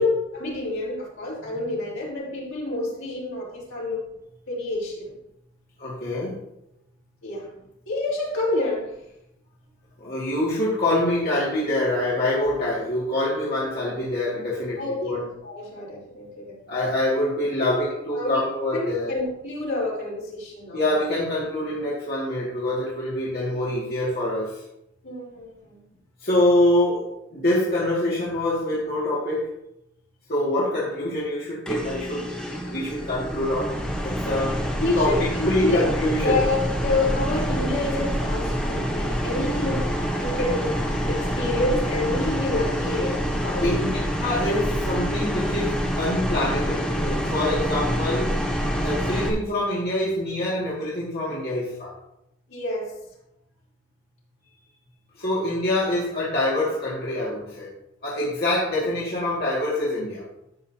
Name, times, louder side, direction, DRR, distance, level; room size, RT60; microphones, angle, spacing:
voice 1, 0.0-4.1 4.5-5.1 7.2-7.6 7.9-9.0 14.8-16.6 17.6-18.4 18.7-20.9 25.0-25.8 34.8-35.9 36.2-44.0 52.5-53.0, left 2 dB, 75° left, -6 dB, 4.1 m, -28 dB
voice 2, 5.8-6.3 10.0-15.2 16.7-19.1 20.7-24.6 26.2-29.5 30.3-32.3 32.7-33.7 34.0-34.7 35.0-36.4 43.6-48.4 48.8-51.9 55.2-57.7 58.0-60.2, left 1 dB, 50° left, -8 dB, 2.3 m, -25 dB
sound 1, 31.7-49.3, equal, 5° left, 1.2 m, -26 dB
13.0 x 7.8 x 2.9 m, 0.82 s
head